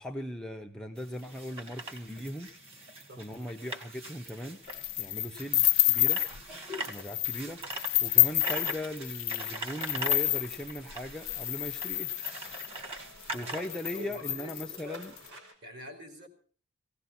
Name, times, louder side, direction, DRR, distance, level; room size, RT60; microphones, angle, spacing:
voice 1, 0.0-2.5 3.2-4.7 5.0-6.2 6.9-7.6 8.0-12.1 13.3-15.1, left 1 dB, 5° left, 1 dB, 0.8 m, -39 dB
sound 1, 1.0-15.4, right 1 dB, 25° right, 2.0 m, -42 dB
sound 2, 4.7-6.4 6.8-7.4 7.7-12.8 13.3-13.4 13.6-15.2, left 19 dB, 70° left, 0.7 m, -28 dB
sound 3, 10.2-15.5, right 1 dB, 85° right, 4.5 m, -56 dB
voice 2, 13.3-15.1 15.6-16.3, left 1 dB, 50° right, 4 dB, 3.9 m, -46 dB
18.0 x 17.0 x 4.3 m, 0.43 s
head